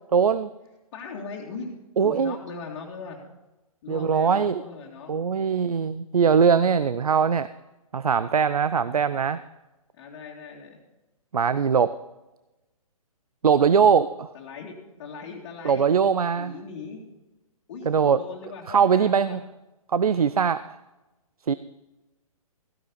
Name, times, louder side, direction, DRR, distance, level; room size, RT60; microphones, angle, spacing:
voice 1, 0.1-0.5 2.0-2.4 3.9-4.6 5.1-7.5 7.9-9.4 11.3-11.9 13.4-14.3 15.6-16.5 17.9-18.2 18.7-19.4 19.9-20.8 21.5-21.6, right 6 dB, 75° right, 15 dB, 0.5 m, -21 dB
voice 2, 0.9-3.2 3.8-5.3 9.9-10.8 14.3-15.8 16.4-17.0 17.7-19.4, left 4 dB, 40° left, -4 dB, 2.2 m, -39 dB
15.0 x 11.0 x 4.1 m, 1.0 s
figure-of-eight pair, 130°, 19 cm